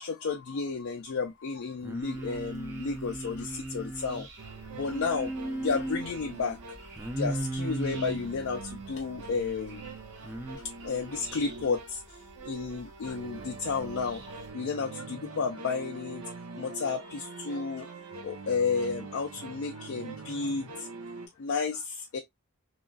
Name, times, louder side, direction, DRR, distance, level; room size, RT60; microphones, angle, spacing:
voice 1, 0.0-5.3 5.6-6.6 7.2-9.9 10.8-12.2 12.5-17.9 18.2-20.9 21.4-22.2, left 5 dB, 65° left, 0.4 m, -32 dB
Singing, 1.8-4.3 4.9-6.1 7.0-8.3 10.2-10.6, right 2 dB, 10° right, 0.4 m, -35 dB
sound 1, 2.1-14.5, right 2 dB, 50° right, 0.9 m, -50 dB
sound 2, 4.4-21.3, right 3 dB, 75° right, 0.6 m, -44 dB
2.9 x 2.4 x 2.3 m
head